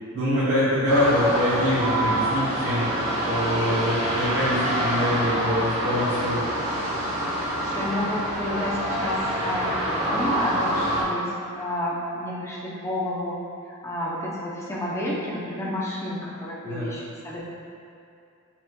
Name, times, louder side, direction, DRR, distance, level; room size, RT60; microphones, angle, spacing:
voice 1, 0.1-2.9 3.2-6.5 16.6-16.9, equal, 65° right, -13 dB, 0.8 m, -24 dB
sound 1, 0.9-11.0, right 1 dB, 30° right, 0.8 m, -26 dB
voice 2, 7.6-13.4 13.7-17.4, left 1 dB, 15° left, -6 dB, 0.6 m, -30 dB
5.7 x 3.0 x 2.2 m, 2.6 s
head